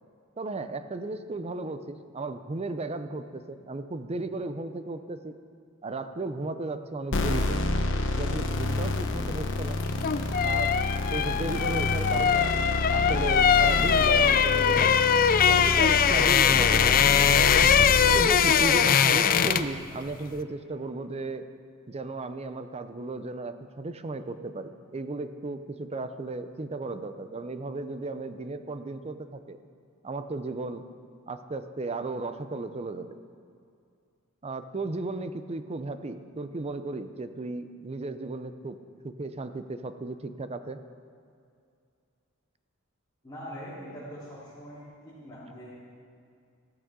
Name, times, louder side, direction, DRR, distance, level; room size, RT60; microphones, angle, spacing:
voice 1, 0.4-5.3 5.8-7.6 8.1-9.8 10.4-10.7 11.1-12.6 12.9-15.0 15.5-17.4 18.1-21.4 21.9-29.6 30.0-30.8 31.3-33.1 34.4-38.8 39.0-40.8, right 2 dB, 30° right, 10 dB, 0.6 m, -35 dB
sound 1, 7.1-18.2, left 2 dB, 60° left, 1.0 m, -29 dB
sound 2, 9.8-19.8 20.1-20.3, left 7 dB, 40° left, 0.4 m, -22 dB
voice 2, 43.2-45.7, equal, 20° left, -13 dB, 3.6 m, -42 dB
15.5 x 13.5 x 3.8 m, 2.4 s
head